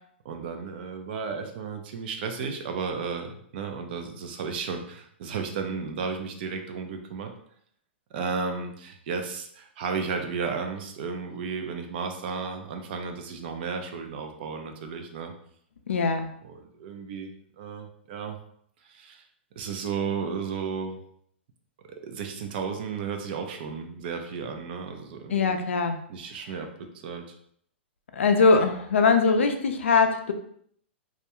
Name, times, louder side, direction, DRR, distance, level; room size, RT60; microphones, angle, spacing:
voice 1, 0.2-7.3 8.1-15.3 16.4-17.3 17.6-18.4 18.8-19.2 19.6-21.0 22.0-25.5 26.1-26.7 26.9-27.4, right 5 dB, 55° right, 4 dB, 0.5 m, -33 dB
voice 2, 15.9-16.3 25.3-26.0 28.1-30.3, left 4 dB, 85° left, 6 dB, 0.4 m, -21 dB
2.3 x 2.2 x 2.9 m, 0.67 s
hypercardioid pair, 130°, 7 cm